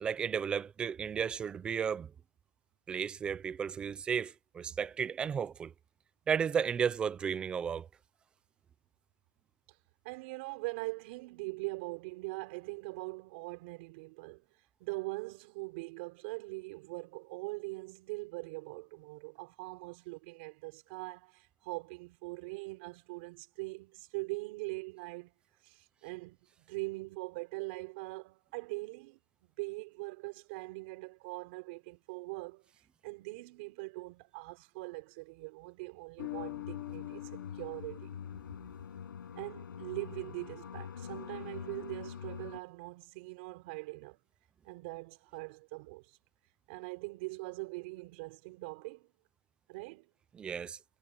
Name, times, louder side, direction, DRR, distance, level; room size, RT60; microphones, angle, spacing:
voice 1, 0.0-2.1 2.9-5.7 6.3-7.9 50.3-50.8, right 7 dB, 10° right, 0.5 m, -33 dB
voice 2, 10.0-14.4 14.8-25.3 25.6-26.4 26.6-29.2 29.6-32.6 33.0-38.1 39.4-44.2 44.6-46.2 46.7-49.1 49.7-50.1, right 26 dB, 35° right, 5.6 m, -42 dB
sound 1, 36.2-42.6, left 7 dB, 90° left, 7.7 m, -45 dB
Bass guitar, 36.2-39.2, left 30 dB, 30° left, 2.3 m, -45 dB
hypercardioid pair, 165°, 11 cm